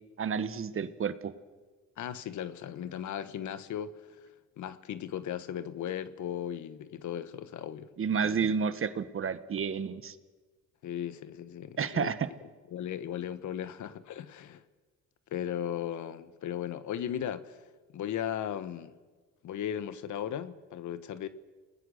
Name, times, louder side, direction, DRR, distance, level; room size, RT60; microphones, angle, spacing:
voice 1, 0.2-1.3 8.0-10.1 11.8-12.3, right 6 dB, 45° right, 1.3 m, -30 dB
voice 2, 2.0-3.9 4.6-7.9 8.2-8.5 10.8-12.1 12.7-14.6 15.3-17.6 17.9-19.0 19.4-21.3, left 10 dB, 75° left, 1.4 m, -36 dB
29.5 x 19.5 x 6.5 m
cardioid pair, 90°, 30 cm